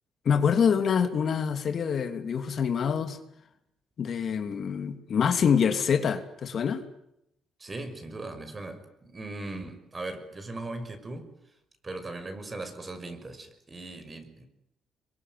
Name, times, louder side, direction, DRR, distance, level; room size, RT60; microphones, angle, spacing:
voice 1, 0.2-3.2 4.0-6.8, left 7 dB, 55° left, 7 dB, 2.9 m, -25 dB
voice 2, 7.6-11.3 11.8-14.5, right 2 dB, 30° right, 9 dB, 5.9 m, -39 dB
26.5 x 23.0 x 9.6 m, 0.81 s
cardioid pair, 90°, 0 cm